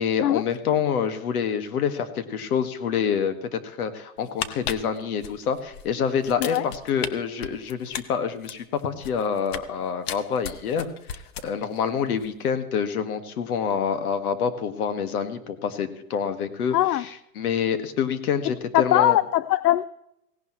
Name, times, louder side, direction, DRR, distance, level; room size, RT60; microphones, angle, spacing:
voice 1, 0.0-10.9 11.1-19.2, left 7 dB, 65° left, 9 dB, 1.8 m, -27 dB
sound 1, 4.2-5.9 6.2-7.1 7.4-9.7 10.1-11.8 12.1-12.3, left 9 dB, 40° left, 0.9 m, -34 dB
voice 2, 16.7-17.0 18.7-19.8, left 13 dB, 85° left, 17 dB, 0.6 m, -20 dB
17.0 x 17.0 x 3.1 m, 0.81 s
supercardioid pair, 155°, 47 cm